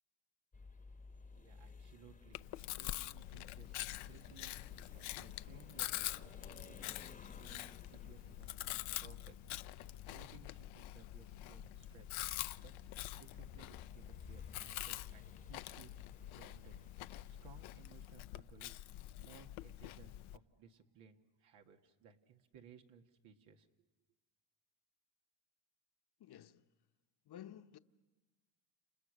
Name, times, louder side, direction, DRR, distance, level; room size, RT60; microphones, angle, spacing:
sound 1, 0.5-18.1, left 3 dB, 15° left, 1.2 m, -58 dB
voice 1, 1.3-2.4 2.7-3.7 4.1-6.1 6.4-6.9 7.4-9.4 9.8-12.2 12.6-12.7 13.2-15.9 16.3-16.7 17.3-18.8 19.2-23.7, right 7 dB, 80° right, 2.1 m, -61 dB
Chewing mastication, 2.3-20.4, left 15 dB, 75° left, 0.8 m, -46 dB
voice 2, 26.2-26.7 27.3-27.8, left 11 dB, 50° left, 1.2 m, -53 dB
30.0 x 28.5 x 6.5 m
cardioid pair, 85°, 48 cm